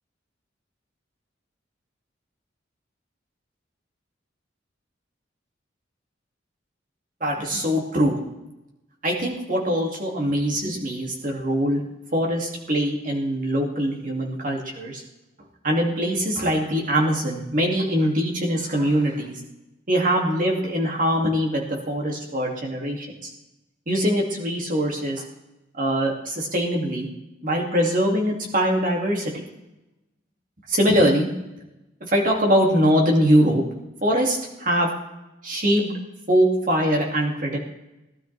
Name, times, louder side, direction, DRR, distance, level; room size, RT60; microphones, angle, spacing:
voice 1, 7.2-8.2 9.0-11.8 12.1-15.0 15.6-19.4 19.9-23.3 23.9-25.2 25.7-27.1 27.4-29.4 30.7-31.3 32.0-33.6 34.0-34.9 35.4-35.9 36.3-37.6, equal, 45° right, -1 dB, 2.4 m, -22 dB
18.5 x 12.0 x 3.4 m, 0.97 s
head